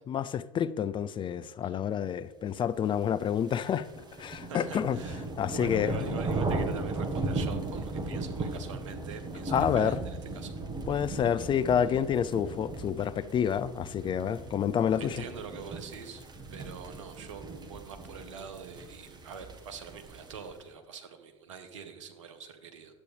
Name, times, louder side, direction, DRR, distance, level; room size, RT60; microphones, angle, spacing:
voice 1, 0.1-3.9 4.2-5.0 5.4-6.2 9.5-10.0 10.9-15.2, left 8 dB, 30° left, 0.4 m, -28 dB
sound 1, 3.0-20.5, right 2 dB, 25° right, 1.3 m, -37 dB
voice 2, 4.5-5.2 5.5-10.6 15.0-16.2 16.5-22.9, right 6 dB, 75° right, 1.1 m, -44 dB
11.0 x 8.3 x 3.3 m
hypercardioid pair, 75°, 16 cm